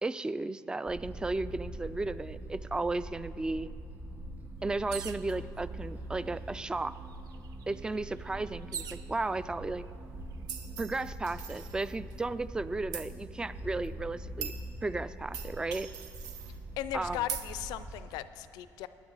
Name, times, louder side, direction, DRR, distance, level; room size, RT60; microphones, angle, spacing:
voice 1, 0.0-3.7 4.6-7.0 7.7-9.8 10.8-14.5 14.8-15.9 16.9-17.2, right 2 dB, 10° right, 15 dB, 0.3 m, -34 dB
sound 1, 0.8-18.0, right 1 dB, 35° right, 3.7 m, -43 dB
sound 2, 4.9-5.3 6.3-6.4 6.7-9.1 9.8-10.3, right 9 dB, 65° right, 0.5 m, -43 dB
sound 3, 10.5-12.2 12.9-13.1 13.8-13.9 14.4-14.6 15.3-16.6 17.3-17.5, right 7 dB, 80° right, 0.9 m, -41 dB
voice 2, 16.8-18.9, left 12 dB, 90° left, 14 dB, 0.5 m, -37 dB
18.5 x 10.0 x 4.0 m, 2.5 s
cardioid pair, 110°, 7 cm